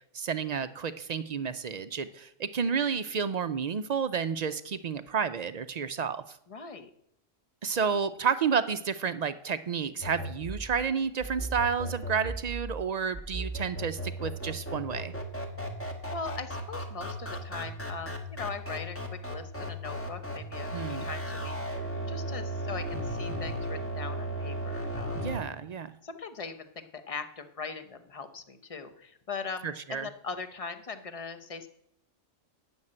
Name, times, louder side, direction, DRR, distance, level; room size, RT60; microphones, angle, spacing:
voice 1, 0.1-6.4 7.6-15.1 20.7-21.1 25.2-25.9 29.6-30.1, right 6 dB, 60° right, 12 dB, 0.4 m, -31 dB
voice 2, 6.5-6.9 16.1-20.7 21.0-25.2 26.0-31.7, left 4 dB, 30° left, 9 dB, 0.9 m, -40 dB
sound 1, 10.0-25.4, right 1 dB, 10° left, 1.3 m, -36 dB
11.0 x 6.4 x 8.6 m, 0.74 s
omnidirectional pair, 1.2 m